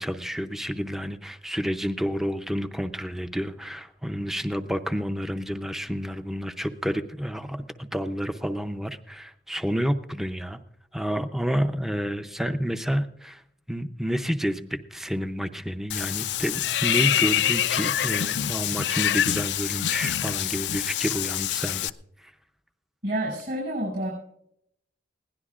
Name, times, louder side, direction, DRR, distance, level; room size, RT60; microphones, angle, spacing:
voice 1, 0.0-10.6 10.9-13.4 13.7-21.9 22.2-22.3, equal, ahead, 8 dB, 0.6 m, -29 dB
Water / Bathtub (filling or washing), 15.9-21.9, left 11 dB, 80° left, 0.4 m, -26 dB
voice 2, 23.0-24.1, right 1 dB, 55° right, -3 dB, 6.2 m, -28 dB
21.0 x 16.5 x 2.4 m, 0.76 s
head